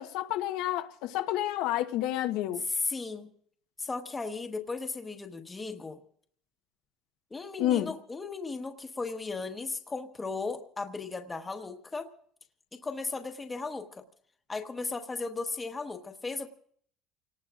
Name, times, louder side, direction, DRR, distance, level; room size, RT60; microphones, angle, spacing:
voice 1, 0.0-2.6 7.6-7.9, left 13 dB, 75° left, 1.0 m, -29 dB
voice 2, 2.7-3.3 3.8-6.0 7.3-12.1 12.7-14.0 14.5-16.5, left 3 dB, 15° left, 1.2 m, -36 dB
29.5 x 18.5 x 2.5 m
cardioid pair, 155°, 0 cm